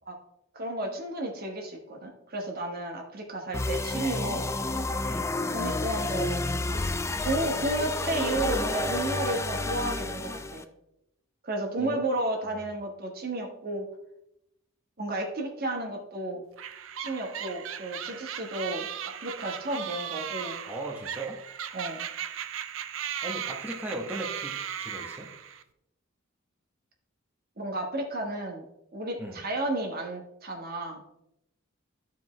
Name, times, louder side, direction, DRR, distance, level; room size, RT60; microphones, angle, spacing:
voice 1, 0.5-4.5 5.2-6.8 7.2-10.6 11.4-13.9 15.0-16.4 17.0-20.6 21.7-22.1 27.6-28.6 28.9-31.0, right 2 dB, 50° right, 2 dB, 1.4 m, -32 dB
sound 1, 3.5-10.6, left 2 dB, 15° left, 0.3 m, -30 dB
sound 2, 16.6-25.6, right 8 dB, 70° right, 0.5 m, -37 dB
voice 2, 20.6-21.4 23.2-25.3 29.2-29.4, right 1 dB, 10° right, -2 dB, 1.0 m, -37 dB
13.0 x 4.6 x 3.2 m, 0.81 s
head